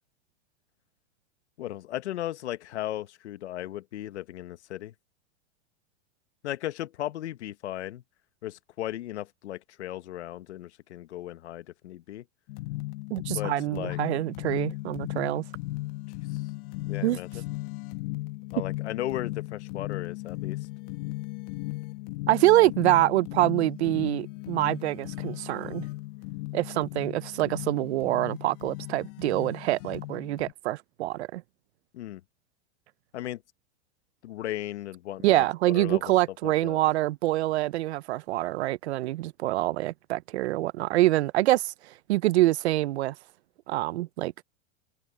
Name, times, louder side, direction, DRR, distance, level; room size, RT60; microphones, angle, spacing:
voice 1, 1.6-4.9 6.4-8.0 8.4-12.2 13.3-14.0 16.9-17.3 18.5-20.6 31.9-32.2 33.1-33.4 34.2-36.0 36.4-36.8, left 13 dB, 80° left, 1.4 m, -36 dB
sound 1, 12.5-30.5, left 20 dB, 55° left, 1.6 m, -36 dB
voice 2, 13.1-15.4 17.0-17.2 22.3-25.8 26.5-31.4 35.2-41.7 42.1-43.1 43.7-44.3, right 16 dB, 70° right, 0.8 m, -25 dB
open air
hypercardioid pair, 120°, 34 cm